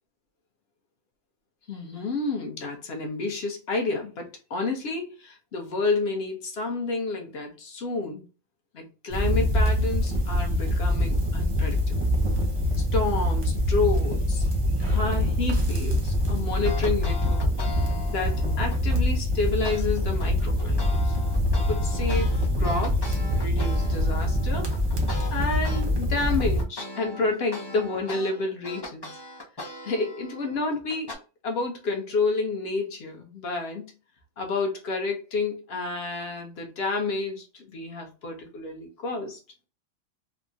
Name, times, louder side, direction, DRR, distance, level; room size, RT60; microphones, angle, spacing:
voice 1, 1.7-8.2 8.7-12.0 12.9-14.5 14.8-17.4 18.1-21.1 21.7-24.7 25.3-29.2 29.8-31.1 31.4-33.8 34.4-39.4, left 3 dB, 55° left, 0.9 m, -30 dB
sound 1, 9.1-26.6, left 1 dB, 30° right, 0.6 m, -24 dB
sound 2, 16.6-19.0 19.6-19.8 20.2-25.8 26.2-31.1, left 2 dB, 35° left, 0.4 m, -39 dB
3.5 x 2.0 x 2.5 m
omnidirectional pair, 1.4 m